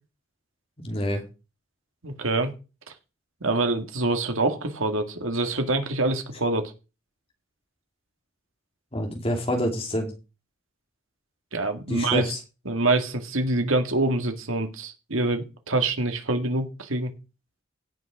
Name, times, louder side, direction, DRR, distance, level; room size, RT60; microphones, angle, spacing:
voice 1, 0.8-1.2 8.9-10.1 11.9-12.4, equal, 30° left, 2.7 m, -27 dB
voice 2, 2.0-2.5 3.4-6.7 11.5-12.3 12.7-17.1, right 2 dB, 80° right, 2.1 m, -25 dB
17.0 x 6.2 x 5.0 m
head